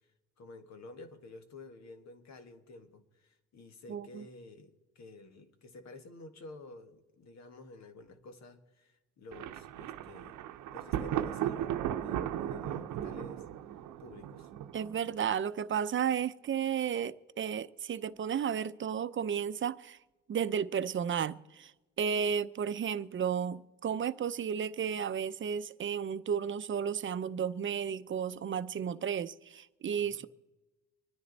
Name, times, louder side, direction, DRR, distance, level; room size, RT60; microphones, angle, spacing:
voice 1, 0.4-10.4 10.7-13.4 14.0-14.5 30.0-30.3, left 2 dB, 60° left, 1.8 m, -51 dB
voice 2, 3.9-4.2 14.7-20.0 20.3-21.7 22.0-30.3, right 8 dB, 40° right, 0.6 m, -33 dB
Thunder, 9.3-15.1, right 11 dB, 80° right, 0.8 m, -36 dB
25.0 x 10.0 x 4.0 m
cardioid pair, 90°, 30 cm